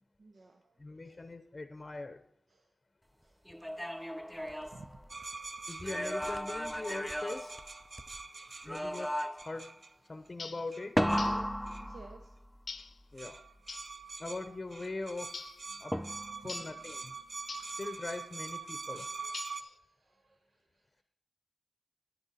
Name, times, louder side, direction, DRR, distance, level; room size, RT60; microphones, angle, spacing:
voice 1, 0.2-0.8 1.0-1.2 2.5-2.7 3.2-3.4 4.0-4.2 4.7-4.8 7.9-8.9 11.4-12.3 16.4-16.5 17.2-17.8 19.3-21.0, right 3 dB, 85° right, 4 dB, 0.8 m, -59 dB
voice 2, 0.8-2.2 5.7-7.6 8.6-9.7 10.1-11.0 13.1-13.4 14.2-15.4 15.7-15.9 16.4-17.1 17.8-19.1, left 3 dB, 40° left, 9 dB, 0.7 m, -41 dB
sound 1, 3.5-5.4 5.8-8.2 8.7-9.6 11.0-12.6 15.9-16.6, equal, 5° left, 0.3 m, -35 dB
sound 2, 5.1-9.9 10.7-11.3 11.7-11.9 12.8-12.9 13.2-19.6, right 4 dB, 55° right, 0.6 m, -44 dB
sound 3, 10.4-10.7 11.2-11.5 12.7-13.0 13.7-13.9 15.3-15.6 16.5-16.8 17.5-17.8 19.3-19.8, left 4 dB, 80° left, 0.6 m, -44 dB
10.5 x 10.0 x 4.1 m, 0.71 s
wide cardioid pair, 65°, 0 cm